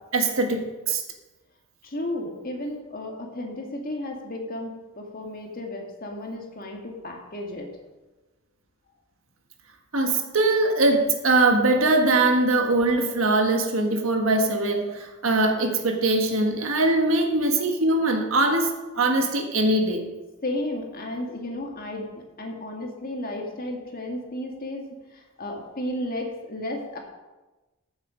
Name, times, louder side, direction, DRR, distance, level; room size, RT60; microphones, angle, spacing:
voice 1, 0.1-1.0 9.9-20.0, right 2 dB, 70° right, 4 dB, 1.5 m, -22 dB
voice 2, 1.8-7.7 20.4-27.0, left 1 dB, 45° left, 1 dB, 1.9 m, -33 dB
13.5 x 7.1 x 5.1 m, 1.1 s
head